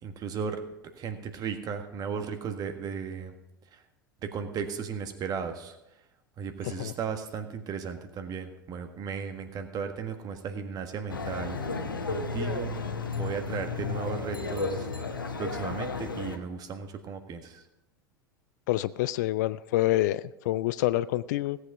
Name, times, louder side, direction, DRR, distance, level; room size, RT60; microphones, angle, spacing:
voice 1, 0.0-0.6 0.9-3.3 3.7-3.8 4.2-5.8 6.4-11.6 12.1-12.8 13.2-17.6, right 6 dB, 35° right, 7 dB, 1.6 m, -35 dB
sound 1, 11.1-16.4, left 4 dB, 80° left, 1.2 m, -33 dB
voice 2, 18.7-21.6, left 15 dB, 55° left, 17 dB, 0.4 m, -27 dB
17.0 x 8.1 x 5.0 m, 0.92 s
figure-of-eight pair, 80°, 11 cm